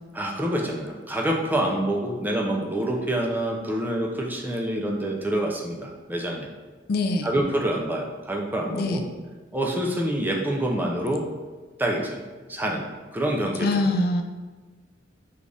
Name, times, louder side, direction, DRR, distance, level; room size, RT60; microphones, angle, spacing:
voice 1, 0.1-6.5 7.2-9.0 9.5-11.2 11.8-12.9 13.1-13.9, right 1 dB, 10° right, 0 dB, 0.4 m, -27 dB
voice 2, 6.9-7.3 8.7-9.1 13.6-14.2, left 2 dB, 55° left, 5 dB, 0.4 m, -23 dB
3.8 x 2.4 x 3.3 m, 1.3 s
head